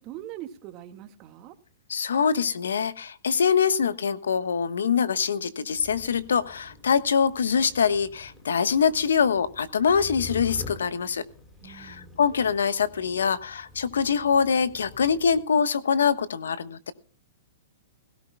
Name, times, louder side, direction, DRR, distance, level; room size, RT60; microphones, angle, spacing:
voice 1, 0.0-1.5 11.6-12.2, right 12 dB, 35° right, 8 dB, 1.8 m, -42 dB
voice 2, 1.9-11.2 11.7-16.9, left 6 dB, 90° left, 14 dB, 1.2 m, -24 dB
sound 1, 5.7-15.4, left 2 dB, 15° left, 6.1 m, -46 dB
18.0 x 17.0 x 2.3 m, 0.40 s
hypercardioid pair, 135°, 0 cm